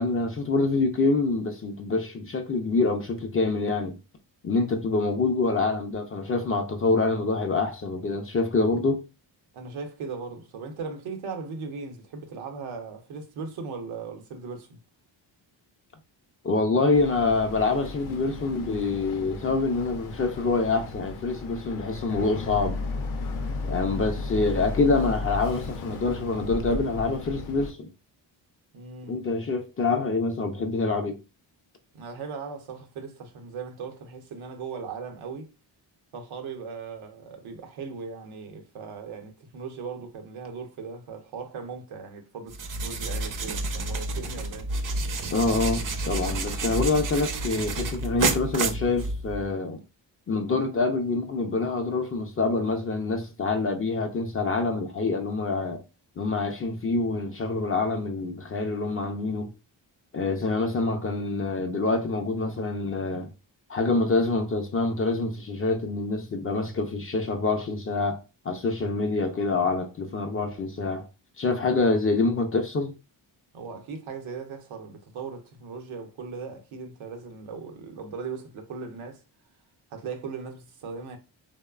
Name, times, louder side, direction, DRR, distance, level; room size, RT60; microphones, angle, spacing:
voice 1, 0.0-4.0 4.4-9.0 16.4-22.8 23.7-27.9 29.1-31.2 45.3-49.8 50.3-55.8 56.2-59.5 60.1-63.3 63.7-68.2 68.4-71.1 71.4-72.9, left 3 dB, 30° left, 0.4 m, -26 dB
voice 2, 9.5-14.8 28.7-29.2 31.9-35.5 36.1-42.5 42.8-44.7 73.5-79.2 79.9-81.2, right 5 dB, 85° right, 0.7 m, -38 dB
Boat Water vehicle, 16.9-27.7, left 3 dB, 85° left, 0.6 m, -35 dB
sound 1, 42.5-49.5, right 3 dB, 45° right, 0.5 m, -30 dB
3.0 x 2.0 x 2.3 m
cardioid pair, 70°, 48 cm